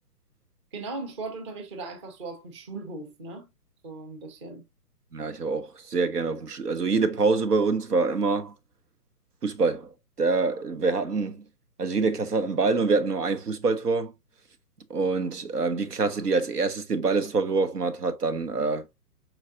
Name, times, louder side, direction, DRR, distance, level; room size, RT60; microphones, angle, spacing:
voice 1, 0.7-3.4 3.8-4.6, right 3 dB, 20° right, 0.7 m, -38 dB
voice 2, 5.1-8.5 9.4-11.4 11.8-14.1 14.9-18.9, right 4 dB, 75° right, 1.0 m, -25 dB
4.7 x 4.0 x 2.5 m
figure-of-eight pair, 130°, 47 cm